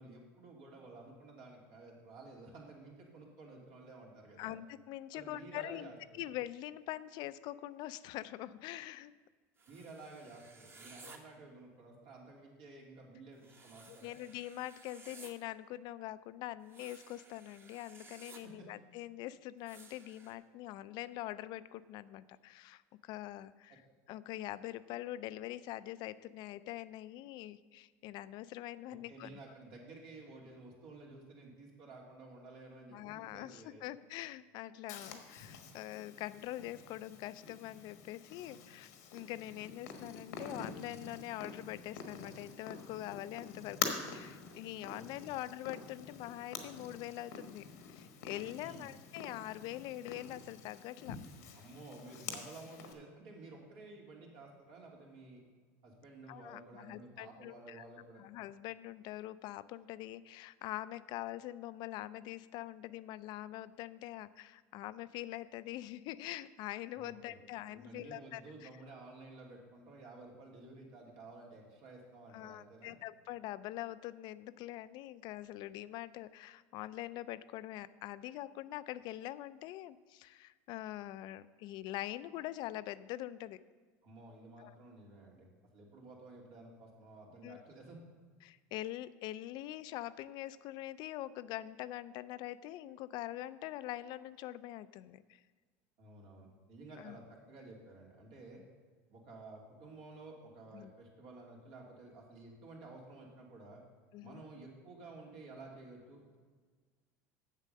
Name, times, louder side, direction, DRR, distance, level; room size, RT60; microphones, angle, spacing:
voice 1, 0.0-4.5 5.1-6.2 9.7-14.2 18.4-18.7 28.9-33.9 44.9-45.4 48.5-49.0 51.5-55.4 55.8-58.3 66.9-67.4 67.7-72.9 84.0-88.0 96.0-98.6 99.1-103.8 104.2-106.4, right 2 dB, 65° right, -1 dB, 2.8 m, -53 dB
voice 2, 4.4-9.1 11.0-11.1 13.9-23.8 24.1-29.4 32.9-51.2 56.3-57.8 58.2-68.7 72.3-83.6 84.6-84.8 87.4-87.6 88.4-95.4 97.0-97.1 100.7-100.9 104.1-104.4, left 14 dB, 60° left, 15 dB, 0.4 m, -44 dB
sound 1, 9.6-11.2 13.4-15.3 16.6-18.4 19.7-20.3, right 3 dB, 25° right, 1.3 m, -56 dB
Purr, 34.9-52.9, left 6 dB, 90° left, 1.3 m, -46 dB
7.6 x 7.3 x 6.5 m, 1.5 s
supercardioid pair, 100°, 9 cm